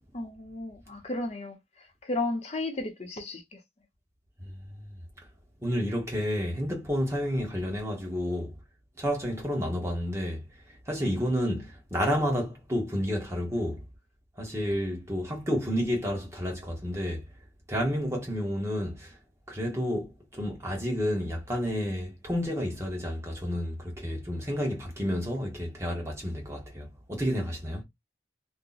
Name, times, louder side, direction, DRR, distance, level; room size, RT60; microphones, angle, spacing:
voice 1, 0.1-3.6, left 2 dB, 35° left, 0.8 m, -34 dB
voice 2, 5.6-8.6 9.0-10.4 10.9-13.8 14.4-17.2 17.7-19.2 19.5-27.8, equal, 15° right, 1.0 m, -30 dB
2.8 x 2.2 x 3.8 m
head